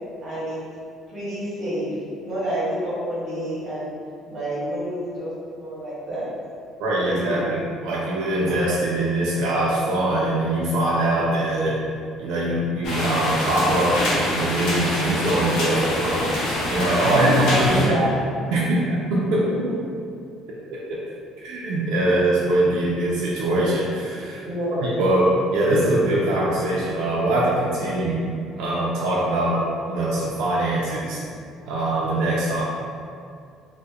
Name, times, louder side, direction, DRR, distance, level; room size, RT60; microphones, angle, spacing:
voice 1, 0.2-0.6 1.1-1.9 2.2-3.9 4.3-5.3 5.6-6.3 7.1-7.5 17.1-18.2 18.5-18.6 19.5-19.6 24.4-25.1, equal, 30° right, -9 dB, 0.8 m, -27 dB
voice 2, 6.8-11.8 12.2-18.0 18.5-19.5 20.5-20.6 20.9-21.0 21.4-24.4 24.8-31.2 31.7-32.6, right 1 dB, 75° right, -6 dB, 0.3 m, -23 dB
sound 1, 12.8-17.9, left 1 dB, 75° left, 0.6 m, -25 dB
2.8 x 2.0 x 2.3 m, 2.3 s
cardioid pair, 180°, 0 cm